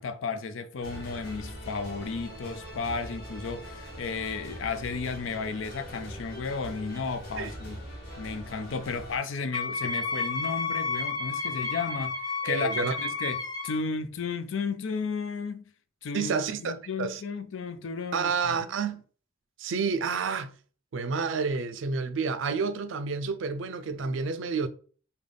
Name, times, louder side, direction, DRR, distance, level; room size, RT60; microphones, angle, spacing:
voice 1, 0.0-7.8 8.2-15.7 16.0-16.4 16.6-18.6, left 5 dB, 70° left, 0.4 m, -33 dB
sound 1, 0.8-9.2, equal, 55° left, 1.2 m, -42 dB
Wind instrument woodwind instrument, 9.5-13.8, left 4 dB, 20° left, 0.6 m, -31 dB
voice 2, 12.4-12.9 16.1-17.2 18.1-19.0 19.6-20.5 20.9-24.7, right 5 dB, 65° right, 0.4 m, -29 dB
3.4 x 2.3 x 3.7 m
head